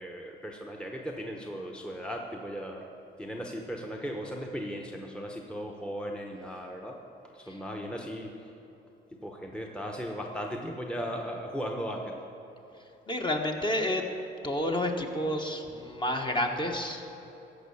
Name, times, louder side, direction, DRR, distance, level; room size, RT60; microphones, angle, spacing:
voice 1, 0.0-2.9 3.2-7.0 7.3-8.5 9.1-12.2, equal, 5° left, 1 dB, 1.0 m, -37 dB
voice 2, 13.1-14.0 14.4-17.1, left 1 dB, 25° left, 2 dB, 1.2 m, -30 dB
14.5 x 5.4 x 7.1 m, 2.9 s
cardioid pair, 90°, 20 cm